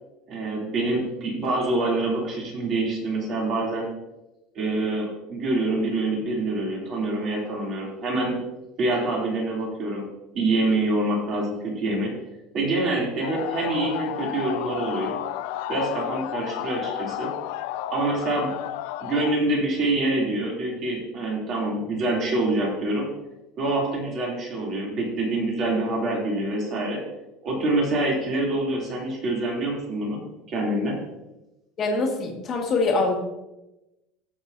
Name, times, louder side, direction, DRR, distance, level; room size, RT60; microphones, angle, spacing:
voice 1, 0.3-3.9 4.5-8.4 8.8-10.1 10.3-12.1 12.5-15.2 15.7-17.3 17.9-18.5 19.0-23.1 23.6-27.0 27.4-30.2 30.5-31.0, right 2 dB, 35° right, -2 dB, 2.9 m, -26 dB
sound 1, 13.2-19.4, left 13 dB, 70° left, 0.4 m, -32 dB
voice 2, 31.8-33.2, left 3 dB, 30° left, 0 dB, 1.7 m, -24 dB
17.0 x 6.1 x 2.7 m, 0.97 s
cardioid pair, 170°, 0 cm